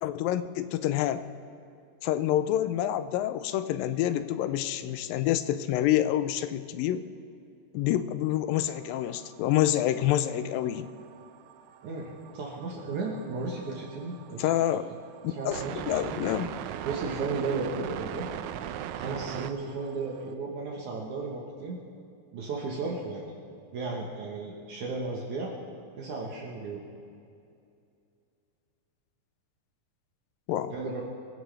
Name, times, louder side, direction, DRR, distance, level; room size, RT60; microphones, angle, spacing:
voice 1, 0.0-1.2 2.0-7.0 7.7-10.9 14.4-14.9 15.2-16.5 30.5-30.7, left 12 dB, 85° left, 12 dB, 2.3 m, -27 dB
sound 1, 8.6-20.3, right 11 dB, 80° right, 1.8 m, -41 dB
voice 2, 11.8-14.5 15.3-16.2 16.8-18.3 18.9-21.8 22.3-23.3 23.7-25.5 26.0-26.8 30.7-31.1, right 3 dB, 65° right, -2 dB, 2.6 m, -34 dB
26.0 x 16.0 x 3.4 m, 2.5 s
omnidirectional pair, 4.0 m